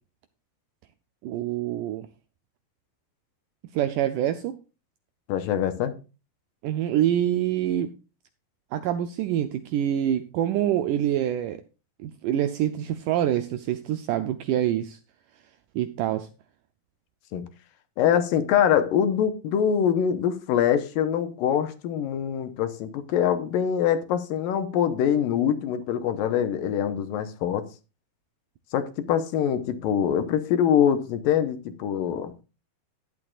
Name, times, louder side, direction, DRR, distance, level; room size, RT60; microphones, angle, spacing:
voice 1, 1.2-2.1 3.7-4.6 6.6-7.9 8.7-11.6 12.0-15.0 15.8-16.3, right 11 dB, 80° right, 1.9 m, -26 dB
voice 2, 5.3-5.9 17.3-17.5 18.0-27.7 28.7-32.3, left 9 dB, 75° left, 2.5 m, -24 dB
13.0 x 10.5 x 2.4 m
omnidirectional pair, 4.3 m